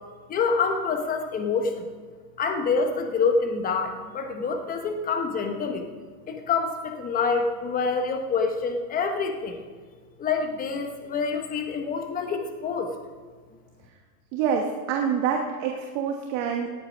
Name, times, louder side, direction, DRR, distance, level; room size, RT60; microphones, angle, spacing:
voice 1, 0.3-1.9 2.4-5.9 6.3-9.6 10.2-12.9, left 4 dB, 20° left, 5 dB, 1.0 m, -26 dB
voice 2, 14.3-16.7, right 7 dB, 45° right, 2 dB, 1.3 m, -26 dB
18.0 x 8.5 x 5.1 m, 1.5 s
supercardioid pair, 160°, 48 cm